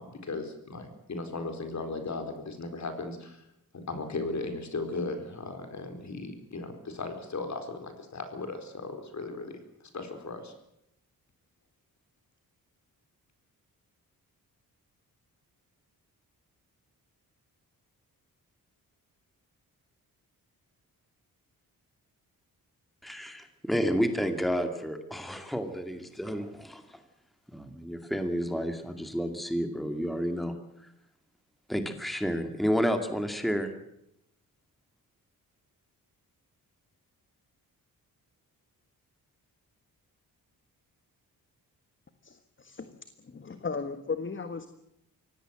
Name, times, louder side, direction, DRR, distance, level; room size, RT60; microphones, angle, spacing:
voice 1, 0.0-3.4 3.7-9.6 9.9-10.5, left 3 dB, 50° left, 7 dB, 4.5 m, -37 dB
voice 2, 23.0-27.0 27.5-30.9 31.7-33.7, equal, ahead, 7 dB, 2.2 m, -31 dB
voice 3, 42.2-43.0 43.2-44.7, left 4 dB, 35° left, 9 dB, 1.6 m, -36 dB
24.0 x 18.0 x 7.8 m, 0.81 s
cardioid pair, 105°, 36 cm